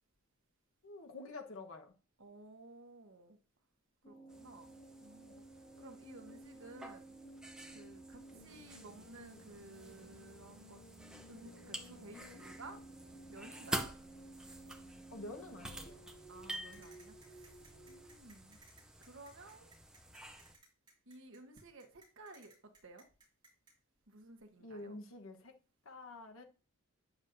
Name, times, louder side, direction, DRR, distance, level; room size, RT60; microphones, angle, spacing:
voice 1, 0.8-1.9 15.1-16.1 24.6-25.5 25.8-26.4, left 2 dB, 70° left, 1.2 m, -48 dB
voice 2, 2.2-3.4 4.1-5.4 5.8-7.1 7.7-10.8 11.3-12.8 13.3-13.9 16.3-17.6 17.9-18.6 19.0-19.7 21.1-22.5 22.8-23.0 24.1-25.0, right 2 dB, 60° right, 1.2 m, -55 dB
sound 1, 4.0-18.1, right 1 dB, 45° left, 2.5 m, -55 dB
sound 2, 4.3-20.6, right 1 dB, 5° right, 0.7 m, -49 dB
sound 3, 16.5-23.7, right 3 dB, 20° right, 2.5 m, -62 dB
9.4 x 7.1 x 2.7 m
head